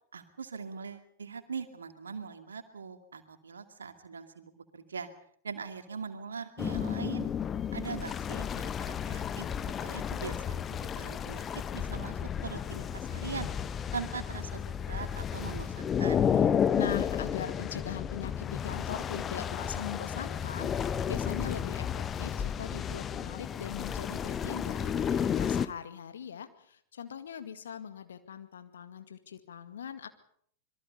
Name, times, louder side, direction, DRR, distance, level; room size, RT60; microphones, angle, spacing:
voice 1, 0.1-5.1 5.4-7.3 7.7-9.5 9.8-11.5 11.7-13.5 13.9-16.3, right 5 dB, 70° right, 8 dB, 2.4 m, -41 dB
sound 1, 6.6-25.7, left 8 dB, 25° left, 0.9 m, -32 dB
voice 2, 16.8-30.1, left 8 dB, 65° left, 10 dB, 2.1 m, -41 dB
26.5 x 22.5 x 5.5 m, 0.62 s
figure-of-eight pair, 90°, 0 cm